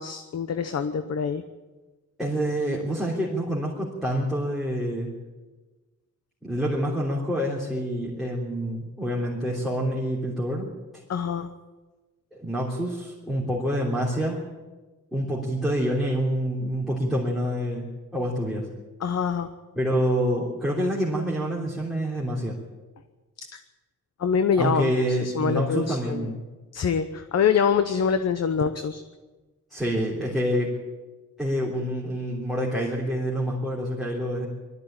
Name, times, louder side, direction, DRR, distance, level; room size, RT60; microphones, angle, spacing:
voice 1, 0.0-1.4 11.1-11.5 19.0-19.5 23.5-23.6 24.2-26.3 26.7-29.0, left 6 dB, 55° left, 10 dB, 1.0 m, -25 dB
voice 2, 2.2-5.1 6.4-10.7 12.3-14.4 15.1-17.9 18.1-18.7 19.7-22.6 24.5-26.4 29.7-30.7 31.4-34.5, equal, ahead, -5 dB, 3.2 m, -27 dB
21.0 x 13.5 x 8.9 m, 1.2 s
wide cardioid pair, 160°, 31 cm